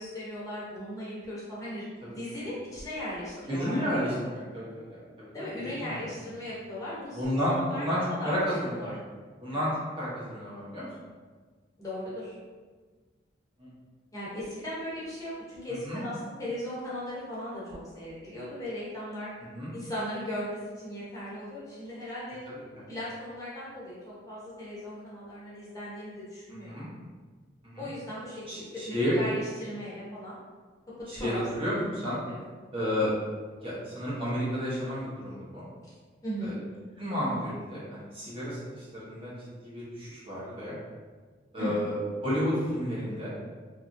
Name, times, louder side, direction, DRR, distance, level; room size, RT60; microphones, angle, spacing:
voice 1, 0.0-3.8 4.1-4.3 5.3-7.8 8.2-8.4 8.8-8.9 9.5-9.7 11.8-12.3 14.1-19.3 19.7-22.4 22.9-26.7 27.8-30.4 31.1-31.6 32.0-32.4 36.2-36.6 41.6-41.8, equal, 20° left, -8 dB, 0.7 m, -37 dB
voice 2, 3.5-6.4 7.1-8.0 8.2-9.0 9.4-9.7 10.0-10.9 13.6-13.7 15.8-16.0 19.5-19.7 22.5-22.8 26.5-26.9 27.6-27.9 28.5-29.2 31.1-32.2 32.7-33.1 33.6-35.6 36.4-36.6 37.0-40.7 41.5-41.9 42.2-43.3, equal, 30° right, -8 dB, 0.8 m, -32 dB
2.9 x 2.4 x 2.5 m, 1.4 s
head